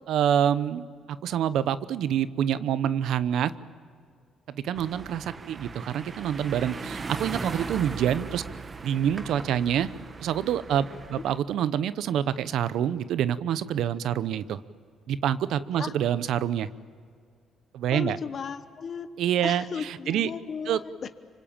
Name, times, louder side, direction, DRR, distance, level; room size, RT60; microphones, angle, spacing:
voice 1, 0.1-3.5 4.5-8.4 8.8-9.9 10.2-14.6 15.1-16.7 17.7-18.2 19.2-19.6 20.1-20.3 20.7-20.8, right 9 dB, 80° right, 15 dB, 0.8 m, -26 dB
sound 1, 4.7-11.4, right 4 dB, 35° right, 1.3 m, -38 dB
voice 2, 10.9-11.2 15.8-15.9 17.9-19.1 19.4-21.1, left 6 dB, 50° left, 10 dB, 1.0 m, -35 dB
26.0 x 25.0 x 8.9 m, 2.2 s
cardioid pair, 90°, 0 cm